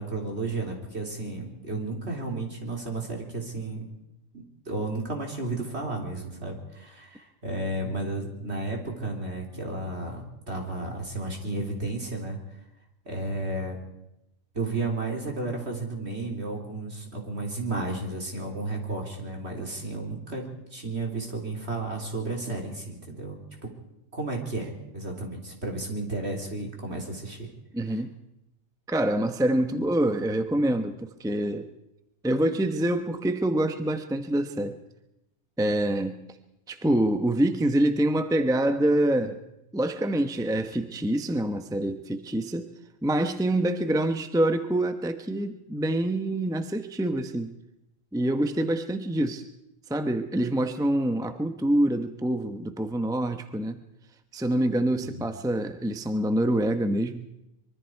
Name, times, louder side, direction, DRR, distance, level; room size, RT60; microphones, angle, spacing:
voice 1, 0.0-3.9 4.3-12.4 13.1-13.8 14.5-20.4 20.7-23.4 24.1-27.5 27.9-28.0 54.9-55.3, right 2 dB, 60° right, 1 dB, 4.0 m, -33 dB
voice 2, 27.7-28.1 28.9-31.7 32.2-34.8 35.6-36.2 36.7-39.4 39.7-42.7 43.0-47.5 48.1-49.5 49.9-53.8 54.3-57.3, right 1 dB, 5° right, 8 dB, 0.9 m, -26 dB
25.0 x 23.5 x 4.7 m, 0.86 s
omnidirectional pair, 1.3 m